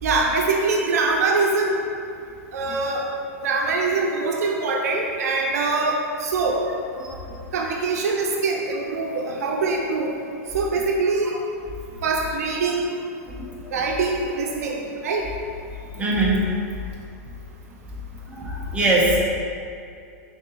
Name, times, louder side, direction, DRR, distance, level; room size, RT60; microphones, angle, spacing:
voice 1, 0.0-1.7 2.5-3.0 3.4-6.6 7.5-10.1 10.5-11.3 12.0-12.9 13.7-15.2, right 3 dB, 75° right, 0 dB, 0.8 m, -23 dB
voice 2, 16.0-16.4 18.3-19.2, right 2 dB, 15° right, -5 dB, 1.3 m, -21 dB
5.9 x 4.0 x 4.1 m, 2.4 s
hypercardioid pair, 125°, 8 cm